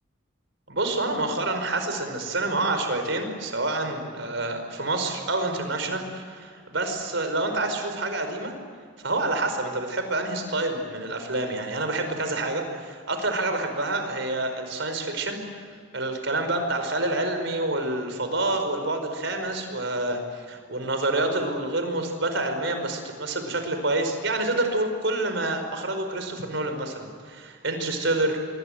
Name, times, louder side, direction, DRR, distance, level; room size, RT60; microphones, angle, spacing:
voice 1, 0.7-8.5 9.0-15.6 15.9-28.4, right 2 dB, 65° right, 6 dB, 5.1 m, -27 dB
26.5 x 23.5 x 8.0 m, 2.1 s
head